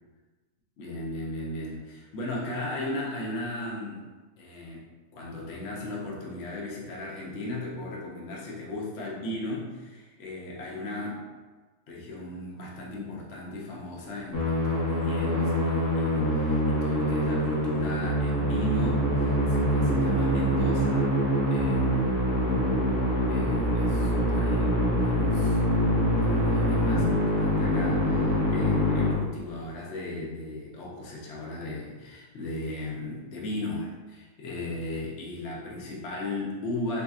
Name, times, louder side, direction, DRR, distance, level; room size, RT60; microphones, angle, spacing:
voice 1, 0.8-4.0 4.4-4.8 5.1-11.2 11.9-21.1 21.5-22.5 23.3-25.6 25.9-37.0, left 1 dB, 55° left, -4 dB, 1.0 m, -36 dB
Musical instrument, 14.3-29.1, equal, 25° left, 0.5 m, -24 dB
4.0 x 3.2 x 2.4 m, 1.3 s
omnidirectional pair, 1.5 m